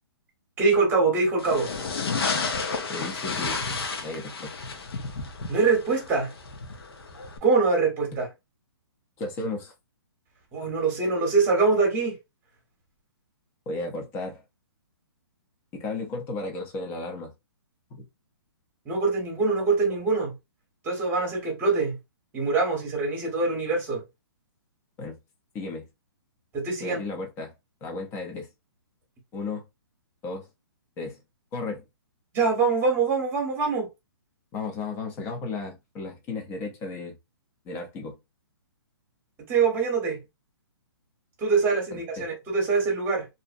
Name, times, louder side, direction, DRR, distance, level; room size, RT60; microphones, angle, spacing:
voice 1, 0.6-1.7 5.5-6.3 7.4-8.3 10.5-12.2 18.9-20.3 20.8-22.0 22.3-24.0 26.5-27.0 32.3-33.9 39.5-40.2 41.4-43.3, right 4 dB, 15° right, 1.0 m, -24 dB
sound 1, 1.4-7.4, left 4 dB, 70° left, 0.7 m, -32 dB
voice 2, 2.9-3.6 4.0-4.5 9.2-9.7 13.7-14.4 15.7-17.3 17.9-18.0 25.0-25.2 25.5-25.9 26.8-27.5 27.8-28.5 29.3-29.6 30.2-30.5 31.0-31.2 31.5-31.8 34.5-37.2 37.7-38.2 41.9-42.2, left 3 dB, 15° left, 0.6 m, -34 dB
2.6 x 2.0 x 2.5 m
hypercardioid pair, 155°, 13 cm